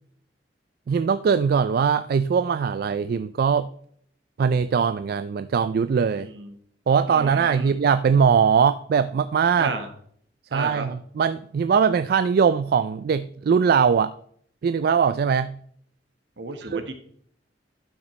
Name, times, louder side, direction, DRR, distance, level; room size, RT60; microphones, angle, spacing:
voice 1, 0.9-3.7 4.4-6.3 6.9-9.7 10.5-14.1 14.6-15.5 16.6-16.8, right 6 dB, 55° right, 12 dB, 0.3 m, -21 dB
voice 2, 6.2-6.5 7.1-7.7 9.6-9.9 10.5-10.8 16.4-16.9, right 2 dB, 75° right, 7 dB, 1.3 m, -32 dB
12.0 x 6.0 x 3.1 m, 0.62 s
head